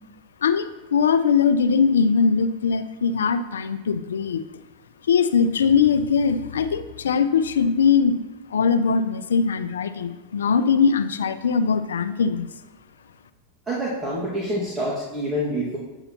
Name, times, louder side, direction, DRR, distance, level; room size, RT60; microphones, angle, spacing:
voice 1, 0.4-4.4 5.1-8.2 8.5-12.5, left 6 dB, 85° left, 12 dB, 0.5 m, -21 dB
voice 2, 13.7-15.8, equal, 15° right, -6 dB, 1.9 m, -27 dB
8.9 x 7.9 x 2.9 m, 1.1 s
hypercardioid pair, 100°, 0 cm